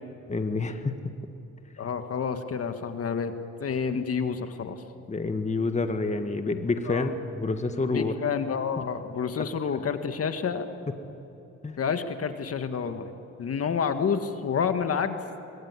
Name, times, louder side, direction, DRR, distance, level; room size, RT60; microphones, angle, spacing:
voice 1, 0.3-0.9 5.1-8.1 8.8-8.9 9.4-9.5 11.6-11.8, left 3 dB, 25° left, 7 dB, 1.6 m, -28 dB
voice 2, 1.8-3.3 3.6-4.8 6.9-7.1 7.9-10.7 11.8-13.1 13.4-15.2, left 6 dB, 50° left, 8 dB, 1.8 m, -29 dB
24.0 x 21.5 x 9.8 m, 2.9 s
cardioid pair, 90°, 30 cm